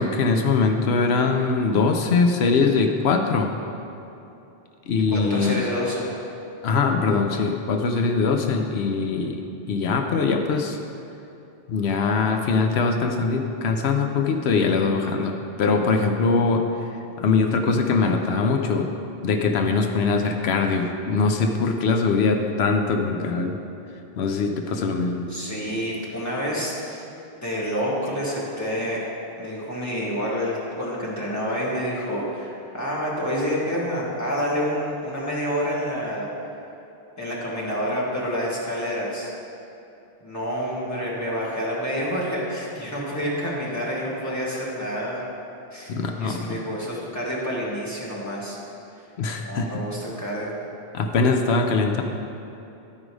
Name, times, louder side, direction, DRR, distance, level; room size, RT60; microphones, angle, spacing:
voice 1, 0.0-3.5 4.9-5.6 6.6-9.4 9.7-10.8 11.7-16.6 17.2-18.9 19.2-23.6 24.2-25.3 45.9-46.6 49.2-49.8 50.9-52.0, left 4 dB, 85° left, 4 dB, 0.9 m, -22 dB
voice 2, 5.1-6.1 25.3-27.0 27.4-29.0 29.3-36.3 37.2-39.3 40.2-45.2 45.7-48.6 49.4-50.5, equal, 15° left, -6 dB, 1.6 m, -28 dB
11.5 x 5.1 x 4.7 m, 2.8 s
omnidirectional pair, 1.0 m